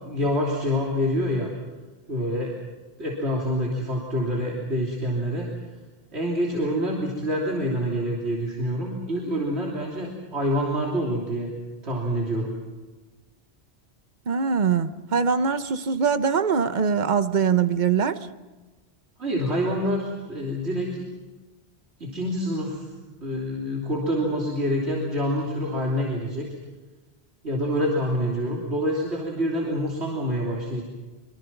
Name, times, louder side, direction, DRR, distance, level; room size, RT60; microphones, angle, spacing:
voice 1, 0.0-1.5 2.1-2.6 3.0-5.5 6.1-11.5 11.8-12.5 19.2-21.0 22.0-22.8 23.2-26.5 27.4-30.8, equal, 90° right, -3 dB, 3.4 m, -26 dB
voice 2, 14.3-18.2, right 6 dB, 45° right, 11 dB, 1.0 m, -22 dB
24.5 x 24.0 x 5.9 m, 1.3 s
omnidirectional pair, 1.1 m